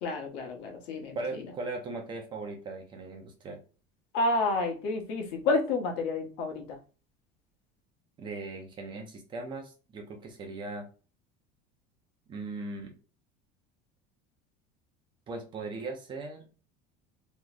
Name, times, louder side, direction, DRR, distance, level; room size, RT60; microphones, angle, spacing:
voice 1, 0.0-1.4 4.1-6.8, left 3 dB, 65° left, 2 dB, 1.2 m, -30 dB
voice 2, 1.1-3.6 8.2-10.9 12.3-12.9 15.3-16.5, right 3 dB, 25° right, 3 dB, 0.7 m, -38 dB
3.8 x 3.1 x 2.4 m, 0.35 s
cardioid pair, 165°, 19 cm